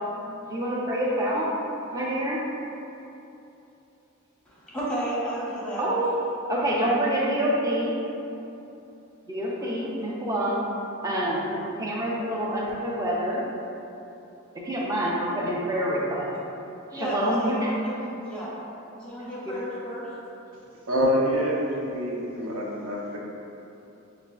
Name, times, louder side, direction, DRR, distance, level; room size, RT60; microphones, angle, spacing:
voice 1, 0.4-1.5 1.9-2.4 5.8-6.1 6.5-7.9 9.3-10.6 11.0-13.4 14.5-16.3 16.9-17.7 19.5-19.6, right 1 dB, 15° right, -5 dB, 0.5 m, -26 dB
voice 2, 4.4-5.9 9.6-9.7 16.9-18.5 18.9-20.1, right 1 dB, 5° left, -8 dB, 0.9 m, -32 dB
voice 3, 20.9-23.2, equal, 80° right, -3 dB, 0.7 m, -26 dB
6.5 x 2.5 x 2.3 m, 2.9 s
head